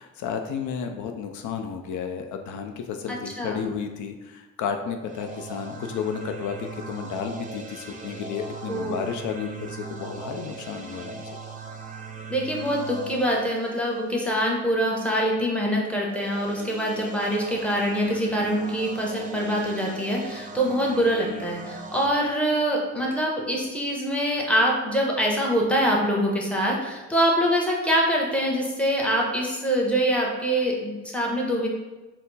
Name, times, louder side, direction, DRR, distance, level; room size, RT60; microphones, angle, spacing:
voice 1, 0.0-11.2, left 7 dB, 75° left, 5 dB, 0.5 m, -32 dB
voice 2, 3.1-3.6 8.7-9.0 12.3-31.7, equal, 5° left, -3 dB, 0.9 m, -24 dB
sound 1, 5.0-14.6 16.0-22.1, right 3 dB, 25° right, 0.6 m, -40 dB
4.2 x 2.0 x 4.0 m, 1.2 s
cardioid pair, 90°, 30 cm